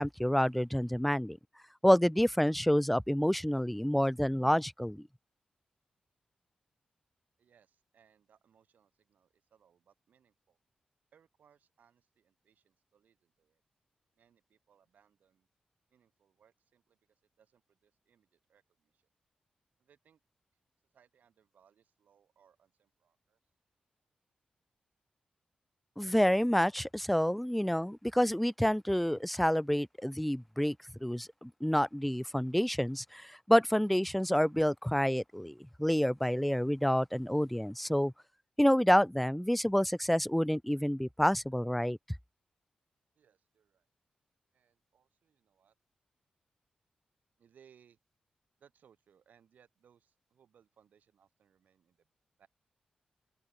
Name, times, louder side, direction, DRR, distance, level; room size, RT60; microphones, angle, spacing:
voice 1, 0.0-1.4 1.8-5.1 26.0-30.8 31.0-38.1 38.6-42.0, equal, 5° left, 0.4 m, -28 dB
voice 2, 7.4-10.6 11.1-13.6 14.1-15.5 15.9-19.1 19.8-20.2 20.9-23.4 43.2-43.9 44.5-45.7 47.4-48.0 48.6-52.1 52.4-52.5, right 8 dB, 80° right, 5.9 m, -67 dB
open air
supercardioid pair, 45°, 3 cm